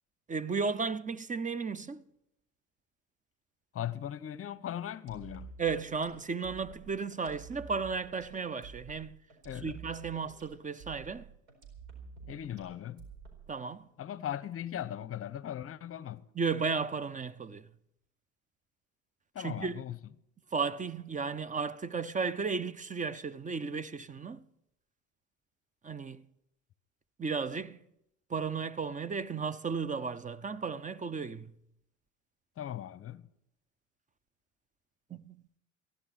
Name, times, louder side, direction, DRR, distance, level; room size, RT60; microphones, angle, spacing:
voice 1, 0.3-2.0 5.6-9.2 9.6-11.3 13.5-13.9 16.4-17.6 19.4-19.8 20.5-24.4 25.8-26.2 27.2-27.8 28.3-31.5 35.1-35.4, right 5 dB, 20° right, 0.7 m, -34 dB
voice 2, 3.7-5.6 9.4-9.8 12.3-13.1 14.0-16.2 19.3-20.0 32.6-33.2, left 11 dB, 35° left, 0.9 m, -39 dB
sound 1, 5.1-13.7, right 5 dB, 85° right, 4.6 m, -49 dB
15.5 x 11.5 x 6.0 m
hypercardioid pair, 75°, 39 cm